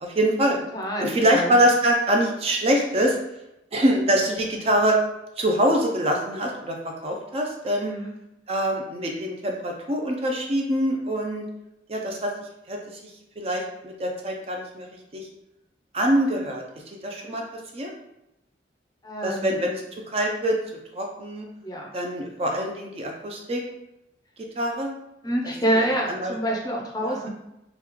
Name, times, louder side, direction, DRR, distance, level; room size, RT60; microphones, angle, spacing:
voice 1, 0.0-0.6 1.0-3.2 3.7-5.0 5.4-6.8 7.0-7.9 8.5-11.5 11.9-12.3 12.7-12.8 13.4-14.9 15.1-15.3 15.9-16.6 17.0-17.9 19.2-19.8 20.1-20.6 20.9-21.5 21.9-23.6 24.4-24.9 26.1-26.3 27.1-27.2, equal, 35° right, 1 dB, 0.4 m, -24 dB
voice 2, 0.7-1.6 7.8-8.1 19.0-19.5 21.6-21.9 25.2-27.3, right 1 dB, 20° left, -1 dB, 0.5 m, -27 dB
3.0 x 2.3 x 3.5 m, 0.88 s
head